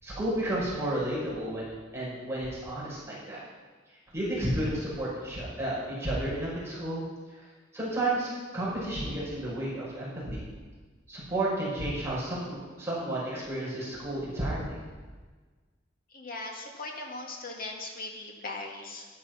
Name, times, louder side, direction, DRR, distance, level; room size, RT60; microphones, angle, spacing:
voice 1, 0.0-3.4 4.1-7.0 7.3-7.4 7.7-10.5 11.1-14.8, right 1 dB, 15° right, -7 dB, 5.8 m, -32 dB
voice 2, 16.1-19.1, left 2 dB, 50° left, 0 dB, 2.4 m, -39 dB
13.0 x 12.0 x 6.0 m, 1.4 s
head